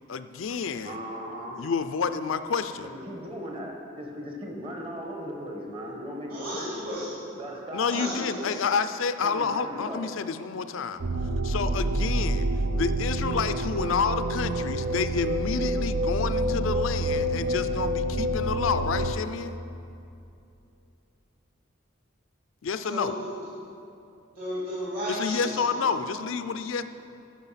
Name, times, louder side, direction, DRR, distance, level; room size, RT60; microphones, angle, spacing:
voice 1, 0.1-1.0 1.6-2.9 7.7-11.0 11.4-12.5 12.7-19.6 22.6-23.2 25.1-26.8, left 5 dB, 80° left, 11 dB, 0.5 m, -29 dB
voice 2, 0.8-1.7 2.8-6.8 7.3-8.2 9.2-10.1, equal, 25° right, 0 dB, 1.2 m, -37 dB
voice 3, 6.3-7.1 7.9-8.5 22.8-23.3 24.3-25.8, equal, 45° right, -10 dB, 2.7 m, -34 dB
sound 1, 11.0-19.1, right 1 dB, 75° right, 0.5 m, -27 dB
14.5 x 6.0 x 5.7 m, 2.7 s
head